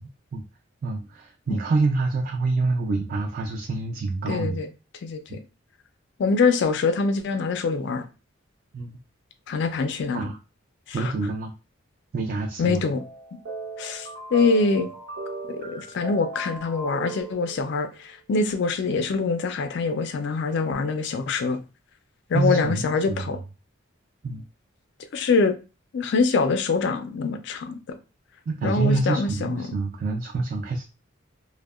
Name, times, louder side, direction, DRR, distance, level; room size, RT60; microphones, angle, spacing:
voice 1, 0.8-4.6 5.3-5.4 8.7-9.0 10.1-10.4 10.9-11.5 12.1-12.8 22.3-23.4 24.2-24.4 28.5-30.8, right 3 dB, 45° right, 0.3 m, -26 dB
voice 2, 4.3-4.7 5.0-5.4 6.2-8.0 9.5-10.2 10.9-11.1 12.6-13.0 13.8-14.9 15.5-21.6 22.3-23.4 25.1-25.5 25.9-27.8 28.6-29.7, left 4 dB, 55° left, 0.4 m, -24 dB
sound 1, 12.9-17.9, right 4 dB, 65° right, 0.8 m, -37 dB
2.6 x 2.1 x 2.3 m
head